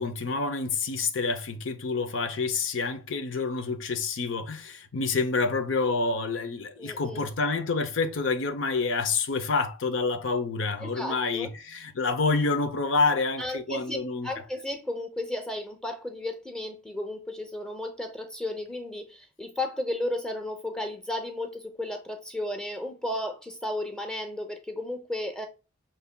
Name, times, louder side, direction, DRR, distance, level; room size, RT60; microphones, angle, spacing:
voice 1, 0.0-14.3, left 4 dB, 85° left, 0.6 m, -28 dB
voice 2, 6.8-7.3 10.8-11.5 13.4-14.0 14.2-25.5, left 1 dB, 5° left, 0.6 m, -34 dB
6.7 x 2.6 x 2.2 m
head